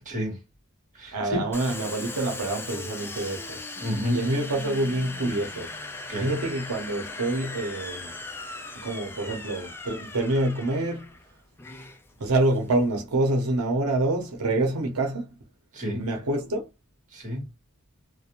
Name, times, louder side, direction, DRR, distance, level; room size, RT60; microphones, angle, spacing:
voice 1, 0.0-0.4 0.9-1.5 3.8-4.3 6.1-6.3 15.7-16.1 17.1-17.5, equal, 35° right, 1.2 m, -30 dB
voice 2, 1.1-3.6 4.1-5.7 6.2-8.1 8.8-11.1 12.2-15.3 16.0-16.7, right 2 dB, 90° right, 0.7 m, -26 dB
Domestic sounds home sounds, 1.5-12.9, left 2 dB, 10° left, 0.4 m, -39 dB
2.4 x 2.1 x 2.8 m
head